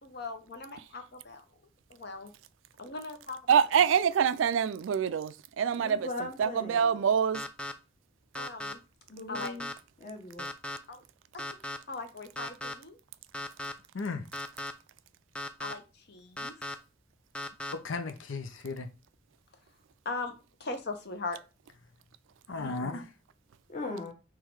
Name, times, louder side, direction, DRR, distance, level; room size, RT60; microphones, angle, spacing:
voice 1, 0.0-1.4 1.9-2.3 2.8-3.6 8.3-8.8 9.3-9.5 10.9-11.0 11.3-11.4 11.9-13.0 15.6-16.7 20.0-20.3 20.6-21.4 22.5-22.8, left 3 dB, 55° left, 0.9 m, -39 dB
voice 2, 3.5-6.1 6.4-7.4, right 7 dB, 80° right, 0.3 m, -25 dB
voice 3, 5.7-7.0 9.1-9.7 10.0-10.5 22.5-23.0 23.7-24.1, left 3 dB, 40° left, 1.1 m, -39 dB
sound 1, 7.3-7.7 8.4-8.7 9.4-9.7 10.4-10.8 11.4-11.8 12.4-12.7 13.3-13.7 14.3-14.7 15.4-15.7 16.4-16.8 17.4-17.7, left 1 dB, 5° left, 0.3 m, -37 dB
voice 4, 17.7-18.9 22.5-23.1, left 3 dB, 85° left, 0.7 m, -35 dB
3.7 x 3.1 x 4.6 m
head